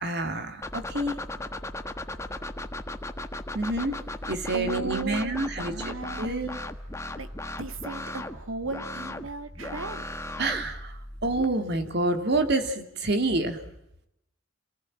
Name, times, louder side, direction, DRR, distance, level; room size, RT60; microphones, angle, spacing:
voice 1, 0.0-1.2 3.5-4.0 4.3-6.5 10.4-13.6, right 2 dB, 55° right, 7 dB, 2.9 m, -28 dB
sound 1, 0.6-11.4, left 1 dB, 15° left, 1.4 m, -37 dB
voice 2, 4.5-6.6 7.2-7.3 7.6-10.0, right 3 dB, 75° right, 9 dB, 2.1 m, -36 dB
28.0 x 18.5 x 8.9 m, 0.81 s
head